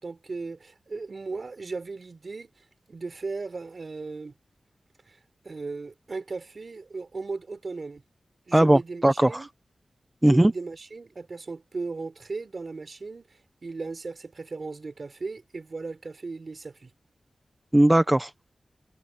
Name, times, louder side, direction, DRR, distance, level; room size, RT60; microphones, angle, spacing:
voice 1, 0.0-4.3 5.1-5.2 5.4-8.0 8.5-9.5 10.2-16.9, right 3 dB, 60° right, 4.0 m, -37 dB
voice 2, 8.5-9.3 10.2-10.5 17.7-18.5, right 1 dB, 20° right, 1.2 m, -19 dB
cardioid pair, 45°, 0 cm